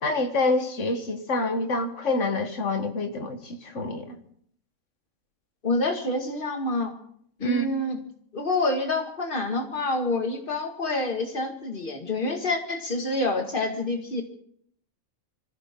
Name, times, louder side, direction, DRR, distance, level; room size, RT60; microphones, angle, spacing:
voice 1, 0.0-4.2 7.4-7.6, left 2 dB, 60° left, 7 dB, 1.8 m, -27 dB
voice 2, 5.6-6.9 7.4-8.0 8.3-14.2, left 2 dB, 40° left, 3 dB, 2.3 m, -27 dB
24.5 x 15.0 x 3.8 m, 0.63 s
omnidirectional pair, 1.4 m